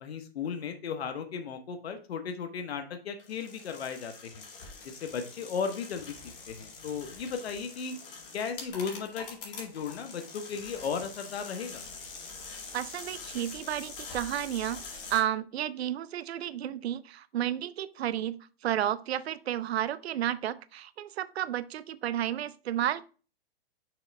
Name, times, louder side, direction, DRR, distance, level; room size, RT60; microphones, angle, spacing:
voice 1, 0.0-4.4 4.8-6.2 6.5-8.0 8.3-11.8, left 6 dB, 90° left, 1.0 m, -36 dB
sound 1, 3.2-15.2, left 4 dB, 60° left, 2.2 m, -45 dB
voice 2, 12.7-14.8 15.1-23.1, right 11 dB, 90° right, 0.5 m, -32 dB
6.2 x 3.2 x 5.0 m
hypercardioid pair, 155°, 31 cm